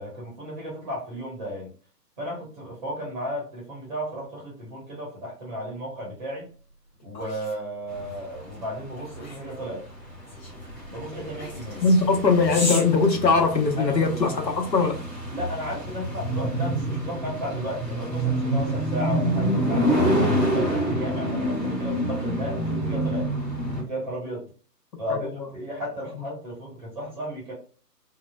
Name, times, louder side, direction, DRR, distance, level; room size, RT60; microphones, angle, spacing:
voice 1, 0.0-1.7 2.2-6.5 7.0-9.8 10.9-11.8 13.8-14.3 15.3-20.1 20.5-23.3 23.8-24.5 25.0-27.5, equal, 30° right, 1.0 m, -34 dB
sound 1, 6.5-14.0, left 2 dB, 30° left, 0.9 m, -37 dB
sound 2, 8.0-23.8, right 1 dB, 5° right, 0.9 m, -27 dB
voice 2, 11.8-14.9 25.1-25.2 26.1-26.2, left 4 dB, 85° left, 0.9 m, -21 dB
3.7 x 2.0 x 2.2 m
figure-of-eight pair, 145°, 50 cm